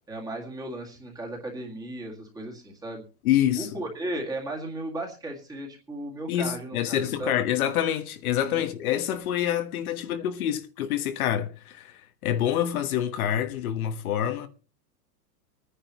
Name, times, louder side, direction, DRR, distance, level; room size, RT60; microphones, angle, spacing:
voice 1, 0.1-3.0 3.6-7.5 8.4-8.7, right 1 dB, 10° right, 2.0 m, -35 dB
voice 2, 3.2-3.7 6.3-14.5, left 11 dB, 60° left, 1.3 m, -27 dB
25.0 x 9.9 x 3.0 m
supercardioid pair, 170°, 48 cm